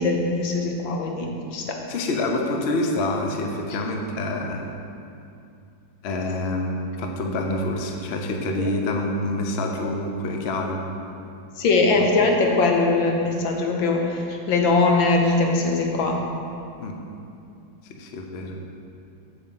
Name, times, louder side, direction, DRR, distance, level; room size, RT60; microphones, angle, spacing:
voice 1, 0.0-1.8 8.6-8.7 11.6-16.2, left 3 dB, 85° left, 1 dB, 1.8 m, -21 dB
voice 2, 1.9-4.7 6.0-10.9 11.9-12.1 16.8-17.0 17.8-18.6, left 2 dB, 50° left, 2 dB, 0.8 m, -27 dB
7.4 x 5.5 x 7.5 m, 2.6 s
omnidirectional pair, 2.0 m